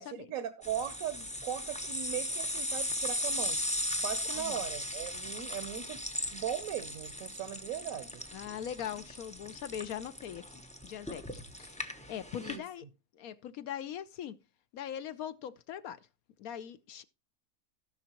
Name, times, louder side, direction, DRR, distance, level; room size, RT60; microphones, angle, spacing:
voice 1, 0.0-3.6 4.0-6.0 6.3-8.2 12.4-12.6, right 10 dB, 65° right, 1.1 m, -38 dB
sound 1, 0.6-12.6, left 1 dB, 10° left, 0.4 m, -37 dB
voice 2, 4.3-4.6 8.3-10.4 10.8-11.8 12.1-12.9 13.1-14.4 14.7-16.0 16.4-17.0, left 9 dB, 70° left, 1.0 m, -41 dB
16.5 x 6.1 x 2.9 m
omnidirectional pair, 1.7 m